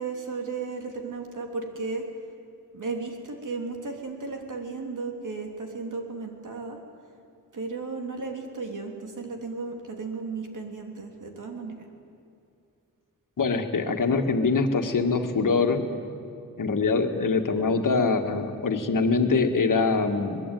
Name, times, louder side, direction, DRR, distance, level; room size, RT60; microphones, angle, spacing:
voice 1, 0.0-2.0 2.7-6.8 7.5-11.7, right 4 dB, 60° right, 3 dB, 3.3 m, -34 dB
voice 2, 13.4-15.8 16.6-20.4, left 4 dB, 65° left, 5 dB, 1.9 m, -24 dB
24.0 x 20.5 x 9.3 m, 2.5 s
wide cardioid pair, 130°, 35 cm